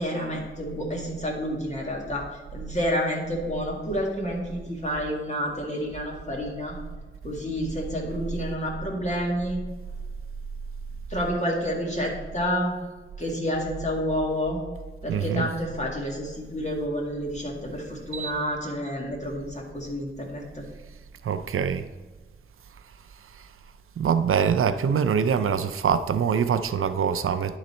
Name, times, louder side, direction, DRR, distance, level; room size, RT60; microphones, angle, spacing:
voice 1, 0.0-2.2 2.5-6.8 7.2-9.6 11.1-12.7 13.2-14.6 15.0-20.6, equal, 35° left, 1.9 m, -29 dB
voice 2, 15.1-15.5 18.1-18.3 21.2-21.9 23.3-23.5 24.0-27.6, right 7 dB, 85° right, 0.4 m, -24 dB
10.5 x 4.0 x 4.3 m
wide cardioid pair, 65°, 21 cm